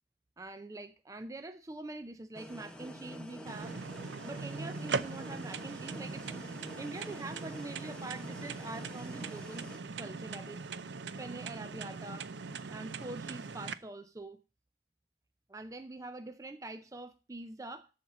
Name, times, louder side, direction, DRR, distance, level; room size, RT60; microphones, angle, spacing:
voice 1, 0.4-3.8 4.2-9.7 10.0-10.6 11.2-12.3 12.7-14.4 15.5-17.9, right 2 dB, 20° right, 0.4 m, -44 dB
sound 1, 2.3-9.8, equal, 5° left, 0.9 m, -48 dB
sound 2, 3.5-13.7, right 4 dB, 90° right, 0.6 m, -40 dB
13.0 x 4.3 x 7.3 m
head